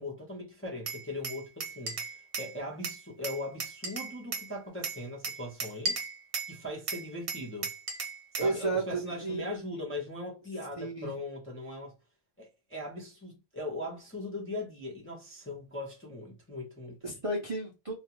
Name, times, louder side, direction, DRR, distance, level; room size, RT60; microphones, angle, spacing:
voice 1, 0.0-6.1 6.5-7.7 8.3-11.9 12.4-17.0, left 1 dB, 15° left, 0.5 m, -39 dB
Glass, 0.9-2.5 2.8-4.5 4.8-6.5 6.9-8.5, right 4 dB, 60° right, 1.1 m, -36 dB
voice 2, 8.4-9.7 10.8-11.2 17.0-17.9, right 3 dB, 35° right, 0.6 m, -33 dB
2.4 x 2.3 x 2.8 m
omnidirectional pair, 1.3 m